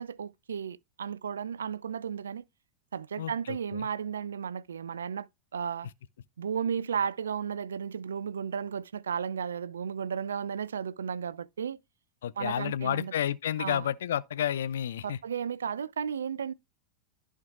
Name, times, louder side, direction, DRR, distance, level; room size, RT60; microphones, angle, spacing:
voice 1, 0.0-2.4 2.9-5.3 5.5-5.9 6.4-11.8 12.4-13.1 13.6-13.9 15.0-16.5, right 7 dB, 70° right, 0.4 m, -34 dB
voice 2, 3.2-3.9 12.2-15.2, left 10 dB, 60° left, 0.5 m, -31 dB
13.5 x 4.6 x 2.3 m
figure-of-eight pair, 90°, 0 cm